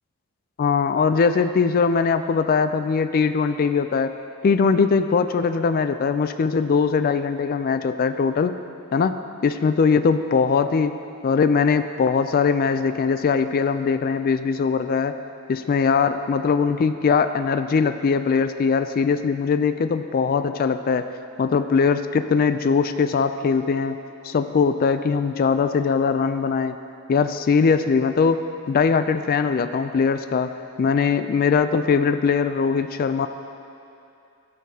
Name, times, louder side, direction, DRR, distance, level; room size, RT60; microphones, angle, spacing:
voice 1, 0.6-4.1 4.4-8.5 8.9-9.2 9.4-11.0 11.2-15.1 15.5-21.1 21.4-24.0 24.2-26.8 27.1-28.4 28.7-30.5 30.8-33.3, left 5 dB, 40° left, 10 dB, 0.3 m, -21 dB
13.5 x 6.6 x 2.8 m, 2.7 s
head